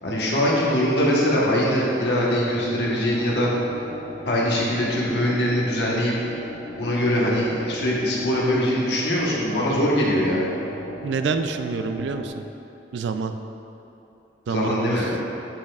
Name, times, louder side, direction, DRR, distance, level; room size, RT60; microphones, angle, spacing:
voice 1, 0.0-3.5 4.2-6.1 6.8-10.4 14.5-15.1, equal, 70° left, -5 dB, 1.2 m, -22 dB
sound 1, 2.4-12.3, equal, 40° left, 0.8 m, -38 dB
voice 2, 11.0-12.3 12.9-13.3 14.5-15.2, right 4 dB, 85° right, 8 dB, 0.4 m, -27 dB
8.9 x 5.3 x 2.4 m, 3.0 s
head